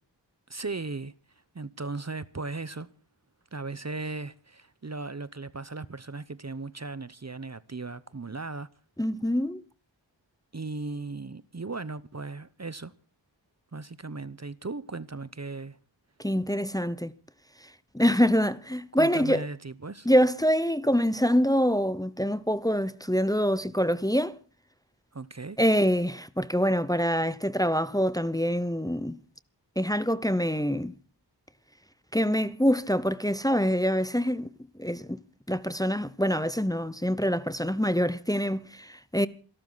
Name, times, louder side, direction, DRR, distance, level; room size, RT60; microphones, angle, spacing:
voice 1, 0.5-1.1 1.5-2.9 3.5-8.7 10.5-12.9 13.7-15.8 18.9-20.1 25.1-25.6, right 3 dB, 35° right, 0.8 m, -37 dB
voice 2, 9.0-9.6 16.2-17.1 17.9-19.5 20.0-24.4 25.6-29.2 29.8-30.9 32.1-34.5 34.8-35.2 35.5-39.3, equal, 10° left, 0.8 m, -25 dB
27.5 x 12.5 x 3.9 m
wide cardioid pair, 45°, 44 cm